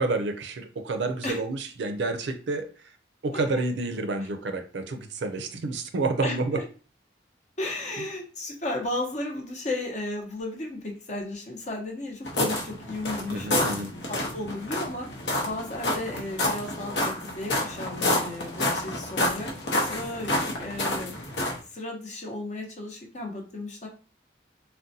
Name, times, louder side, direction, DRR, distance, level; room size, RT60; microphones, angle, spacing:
voice 1, 0.0-2.7 3.2-6.6 13.3-13.9, right 3 dB, 75° right, 7 dB, 0.4 m, -29 dB
voice 2, 6.2-6.6 7.6-13.5 14.0-15.1 15.4-19.5 19.9-23.9, left 2 dB, 40° left, 1 dB, 0.7 m, -34 dB
sound 1, 12.2-21.6, left 1 dB, 75° left, 0.8 m, -29 dB
3.7 x 2.1 x 2.7 m, 0.36 s
head